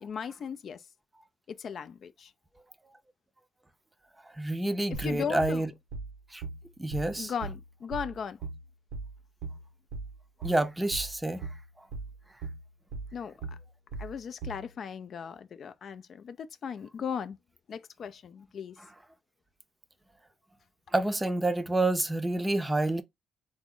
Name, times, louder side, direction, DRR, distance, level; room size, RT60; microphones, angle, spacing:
voice 1, 0.0-0.8 1.5-2.3 4.9-5.6 7.2-8.4 13.1-13.3 14.0-17.4 17.7-18.7, left 7 dB, 55° left, 0.3 m, -37 dB
voice 2, 4.4-5.7 6.3-6.4 6.8-7.3 10.4-11.4 20.9-23.0, right 2 dB, 15° right, 0.5 m, -28 dB
sound 1, 4.9-14.7, right 4 dB, 90° right, 0.7 m, -39 dB
3.5 x 2.0 x 3.6 m
cardioid pair, 90°, 0 cm